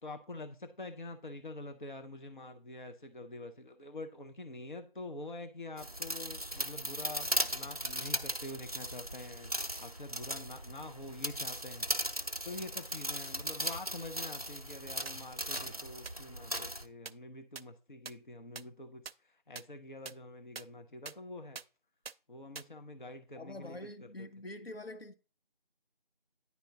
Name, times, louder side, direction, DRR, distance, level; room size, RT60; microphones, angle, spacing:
voice 1, 0.0-21.6 22.3-24.3, left 2 dB, 55° left, 0.8 m, -46 dB
sound 1, 5.8-16.9, equal, 40° right, 0.6 m, -38 dB
sound 2, 15.1-15.2 15.6-15.7 16.1-16.2 16.6-16.7 17.1-17.2 17.6-17.7 18.1-18.2 18.6-18.7 19.1-19.2 19.6-19.7 20.1-20.2 20.6-20.7 21.1-21.2 21.6-21.7 22.1-22.2 22.6-22.7, right 6 dB, 85° right, 0.5 m, -42 dB
voice 2, 23.3-25.1, left 1 dB, 80° left, 1.1 m, -45 dB
9.7 x 4.6 x 3.9 m
figure-of-eight pair, 175°, 30 cm